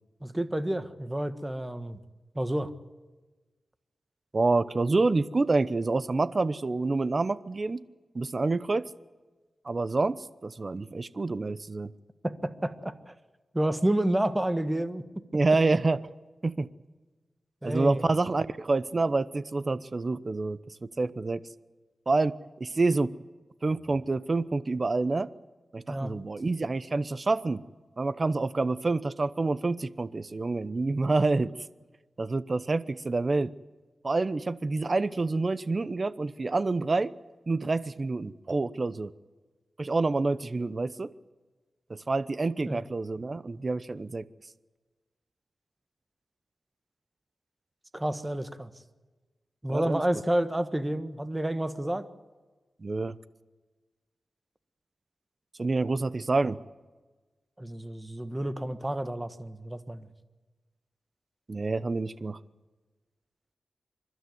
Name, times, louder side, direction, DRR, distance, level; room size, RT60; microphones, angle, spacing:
voice 1, 0.2-2.0 2.3-2.7 12.2-13.1 13.5-15.0 17.6-18.1 25.9-26.1 42.7-42.8 47.9-48.7 49.6-52.0 57.6-60.1, right 1 dB, 15° right, 11 dB, 1.5 m, -30 dB
voice 2, 4.3-7.8 8.1-8.8 9.6-11.9 15.3-16.0 16.4-16.7 17.6-21.4 22.1-23.1 23.6-25.3 25.7-27.6 28.0-31.5 32.2-33.5 34.0-37.1 37.5-39.1 39.8-41.1 41.9-44.2 49.7-50.0 52.8-53.1 55.6-56.6 61.5-62.4, right 3 dB, 40° right, 16 dB, 0.9 m, -27 dB
28.0 x 12.5 x 9.5 m, 1.3 s
cardioid pair, 75°, 0 cm